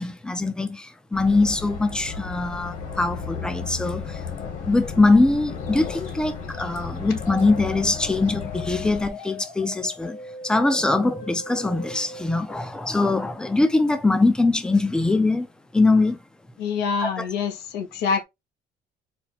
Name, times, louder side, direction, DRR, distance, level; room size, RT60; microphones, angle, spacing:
voice 1, 0.0-4.2 4.6-10.2 10.4-15.5 15.7-16.2 17.0-17.3, left 2 dB, 5° left, 0.4 m, -22 dB
sound 1, 1.1-9.1, left 5 dB, 50° left, 1.2 m, -34 dB
sound 2, 7.2-12.5, left 2 dB, 70° left, 2.0 m, -39 dB
voice 2, 16.6-18.2, left 5 dB, 85° left, 0.8 m, -26 dB
4.3 x 2.1 x 4.0 m
cardioid pair, 170°, 17 cm